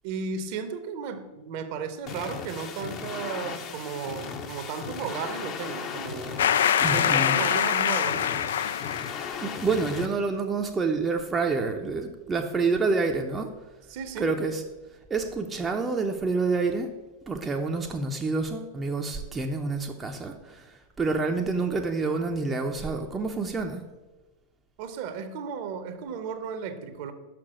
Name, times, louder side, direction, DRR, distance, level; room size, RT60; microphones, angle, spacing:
voice 1, 0.0-6.5 6.9-8.3 13.9-14.3 24.8-27.1, right 6 dB, 45° right, 9 dB, 0.9 m, -34 dB
sound 1, 2.1-10.1, left 6 dB, 35° left, 0.8 m, -37 dB
sound 2, 6.4-9.3, left 9 dB, 60° left, 0.3 m, -24 dB
voice 2, 6.8-7.4 9.4-13.5 14.2-14.6 15.1-16.9 17.3-23.8, right 4 dB, 15° right, 3 dB, 0.6 m, -28 dB
6.0 x 6.0 x 6.2 m, 1.2 s
figure-of-eight pair, 90°, 0 cm